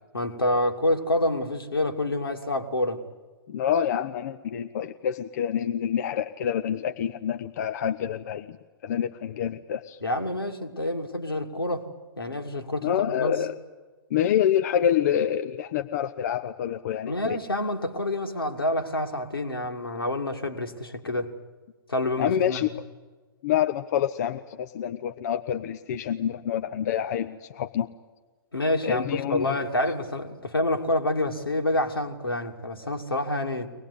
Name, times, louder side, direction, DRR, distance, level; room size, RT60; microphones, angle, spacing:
voice 1, 0.1-3.0 10.0-11.9 12.2-13.3 17.0-21.3 21.9-22.7 28.5-33.7, left 1 dB, 80° left, 3 dB, 2.8 m, -27 dB
voice 2, 3.5-8.6 8.8-10.0 12.8-13.5 14.1-17.4 22.2-22.7 23.4-27.9 28.8-29.5, left 9 dB, 45° left, 8 dB, 0.9 m, -27 dB
24.0 x 19.5 x 9.9 m, 1.3 s
figure-of-eight pair, 110°, 12 cm